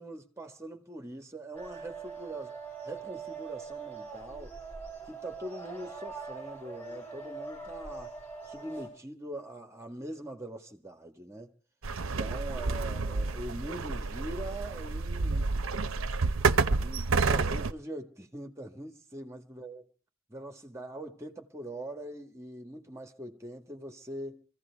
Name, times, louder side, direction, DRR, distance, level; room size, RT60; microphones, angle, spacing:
voice 1, 0.0-2.6 2.8-4.6 5.1-8.1 8.5-11.5 12.0-15.6 16.8-19.8 20.3-24.4, right 1 dB, 15° right, 1.6 m, -42 dB
sound 1, 1.5-8.9, right 4 dB, 10° left, 7.4 m, -42 dB
sound 2, 11.8-17.7, right 4 dB, 70° right, 0.7 m, -29 dB
24.5 x 15.5 x 3.5 m
head